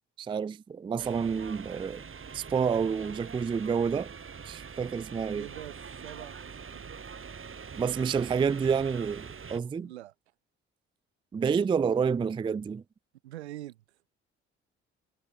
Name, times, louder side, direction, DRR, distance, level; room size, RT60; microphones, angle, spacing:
voice 1, 0.2-2.0 2.3-4.1 4.5-5.5 7.8-9.9 11.3-12.8, right 6 dB, 15° right, 0.3 m, -29 dB
sound 1, 1.0-9.6, right 6 dB, 40° right, 3.6 m, -44 dB
voice 2, 5.3-5.8 6.0-6.9 9.8-10.1 13.2-13.8, right 15 dB, 90° right, 0.9 m, -44 dB
hypercardioid pair, 45°, 32 cm